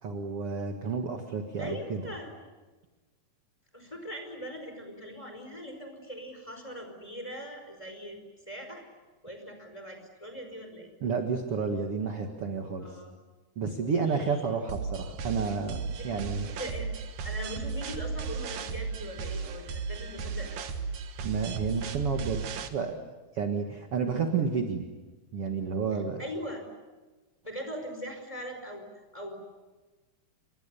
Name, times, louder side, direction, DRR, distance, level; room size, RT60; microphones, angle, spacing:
voice 1, 0.0-2.0 11.0-13.0 13.6-15.8 16.0-16.5 21.2-23.0 23.3-24.8 25.3-26.2, right 5 dB, 50° right, 4 dB, 2.1 m, -31 dB
voice 2, 1.6-2.3 3.7-8.2 8.5-8.8 9.2-10.9 12.8-13.1 13.8-14.5 16.0-16.1 16.5-16.9 17.2-20.7 25.9-26.6 27.4-28.9 29.1-29.4, equal, 10° left, 5 dB, 4.7 m, -41 dB
sound 1, 14.7-22.7, right 5 dB, 65° right, 2.8 m, -35 dB
29.5 x 24.5 x 6.9 m, 1.2 s
omnidirectional pair, 4.3 m